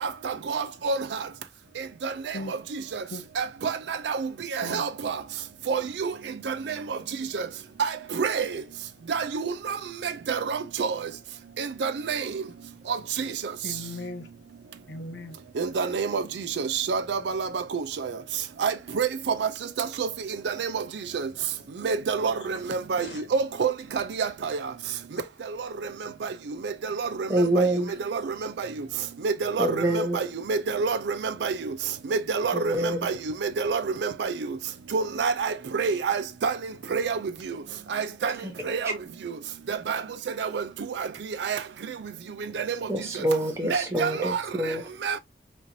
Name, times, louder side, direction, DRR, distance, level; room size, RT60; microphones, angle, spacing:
voice 1, 0.0-1.0 2.0-2.1 2.5-2.6 2.9-3.0 3.4-5.2 5.7-6.1 6.5-7.0 7.3-7.4 7.8-8.5 9.1-9.8 10.0-11.0 11.6-12.2 12.9-13.0 15.6-16.2 16.6-18.1 18.6-19.5 19.8-20.1 20.5-20.8 21.1-21.3 21.8-23.1 23.3-24.6 26.6-27.3 27.6-27.7 28.1-28.2 28.6-28.7 29.2-29.7 29.9-31.6 32.1-32.7 33.0-33.2 33.4-34.3 34.9-36.6 36.9-37.2 37.9-38.3 38.7-38.9 39.7-40.0 40.4-40.6 41.0-41.1 41.4-41.6 42.5-42.8 43.7-44.4 45.0-45.2, right 5 dB, 75° right, 0.4 m, -28 dB
voice 2, 13.6-14.3 14.9-15.4 22.3-22.5 23.0-23.2, left 2 dB, 75° left, 0.8 m, -38 dB
voice 3, 27.3-27.9 29.6-30.2 32.5-33.1 38.4-38.5 38.8-38.9 42.9-44.9, right 1 dB, 15° right, 0.8 m, -26 dB
4.2 x 3.0 x 2.7 m
head